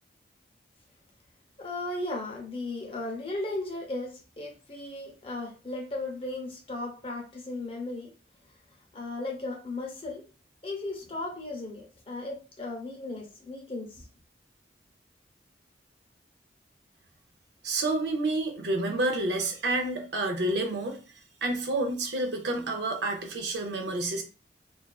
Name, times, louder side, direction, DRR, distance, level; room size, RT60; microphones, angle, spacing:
voice 1, 1.6-8.1 8.9-10.2 10.6-14.1, left 2 dB, 30° left, 0.6 m, -36 dB
voice 2, 17.6-21.0 21.4-24.2, right 2 dB, 75° right, 0.5 m, -29 dB
2.4 x 2.3 x 2.2 m
head